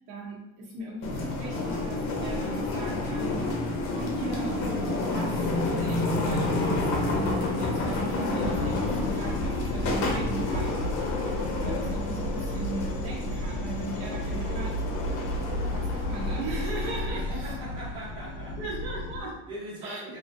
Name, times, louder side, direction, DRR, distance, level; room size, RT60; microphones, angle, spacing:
voice 1, 0.0-3.4 4.1-4.5 5.1-10.8 11.5-14.8 15.7-17.6 18.6-19.4 19.8-20.2, right 2 dB, 65° right, -3 dB, 0.8 m, -38 dB
sound 1, 1.0-17.1, left 2 dB, 45° left, 0.6 m, -30 dB
sound 2, 8.4-19.2, left 1 dB, 75° left, 0.7 m, -33 dB
voice 2, 17.1-18.6 19.0-19.1 19.5-20.2, right 1 dB, 15° right, -8 dB, 0.8 m, -40 dB
3.0 x 2.5 x 2.6 m, 1.0 s
cardioid pair, 175°, 38 cm